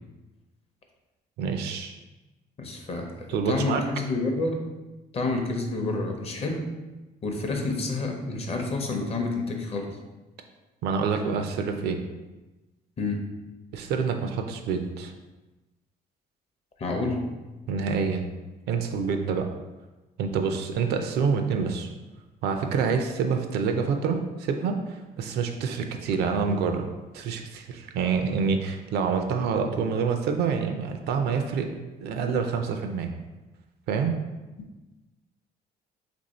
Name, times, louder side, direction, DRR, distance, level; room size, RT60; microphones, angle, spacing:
voice 1, 1.4-1.9 3.3-3.8 10.8-12.0 13.7-15.1 17.7-18.2 18.7-19.5 20.2-21.9 22.4-26.9 27.1-31.7 32.0-33.1 33.9-34.2, right 5 dB, 75° right, 5 dB, 0.5 m, -27 dB
voice 2, 2.6-4.6 5.1-6.7 7.2-10.0 13.0-13.3 16.8-17.3, left 2 dB, 35° left, 3 dB, 0.6 m, -29 dB
3.0 x 2.6 x 4.1 m, 1.1 s
cardioid pair, 110°, 17 cm